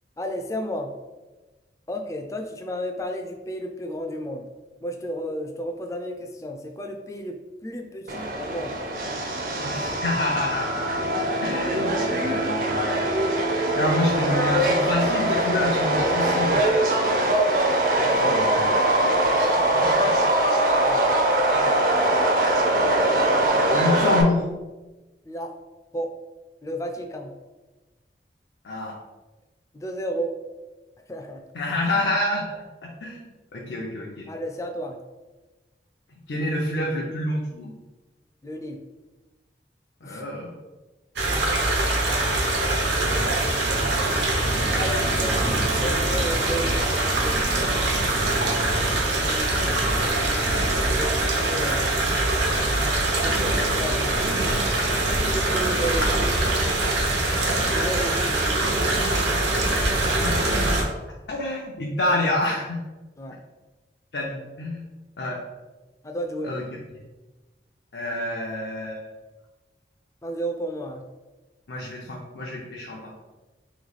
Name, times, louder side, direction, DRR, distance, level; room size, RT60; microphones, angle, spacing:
voice 1, 0.2-1.0 1.9-4.5 4.8-8.8 20.8-21.0 25.2-25.5 25.9-26.1 26.6-27.4 29.7-30.4 31.1-31.4 34.3-35.0 38.4-38.8 40.0-40.2 44.7-45.3 45.8-47.5 49.3-49.9 50.8-51.9 52.7-53.0 53.2-54.1 55.0-56.4 57.7-58.8 63.2-63.4 66.0-66.5 70.2-71.0, equal, 20° left, 3 dB, 0.3 m, -33 dB
Subway metro underground, 8.1-24.2, right 1 dB, 50° right, 0.5 m, -22 dB
voice 2, 9.6-11.0 11.4-13.2 13.8-17.5 18.0-19.0 19.4-20.1 21.5-21.7 23.7-24.4 28.6-28.9 31.5-32.5 32.8-33.2 33.5-34.3 36.3-37.7 40.0-40.5 42.9-43.3 44.6-45.3 60.2-60.6 61.3-62.8 64.1-64.9 65.2-65.4 66.4-66.6 67.9-69.1 71.7-73.1, left 1 dB, 75° left, -3 dB, 0.6 m, -28 dB
sound 1, 41.2-60.8, right 2 dB, 85° right, 0.9 m, -23 dB
3.1 x 3.0 x 3.9 m, 1.2 s
head